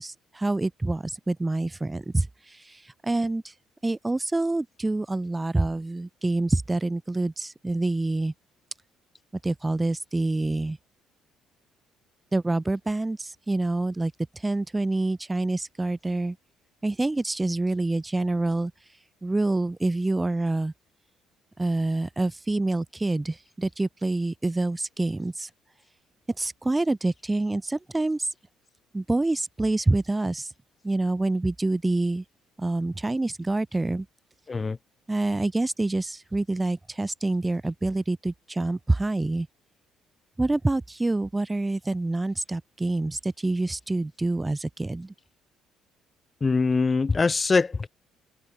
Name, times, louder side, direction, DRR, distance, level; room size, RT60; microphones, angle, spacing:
voice 1, 0.0-3.5 3.8-8.3 9.4-10.8 12.3-16.4 16.8-18.7 19.2-20.7 21.6-25.5 26.4-28.3 28.9-30.5 30.8-32.2 32.6-34.1 35.1-39.5 40.4-45.1, right 2 dB, 15° right, 3.6 m, -27 dB
voice 2, 34.5-34.8 46.4-47.9, left 4 dB, 25° left, 6.6 m, -23 dB
cardioid pair, 90°, 0 cm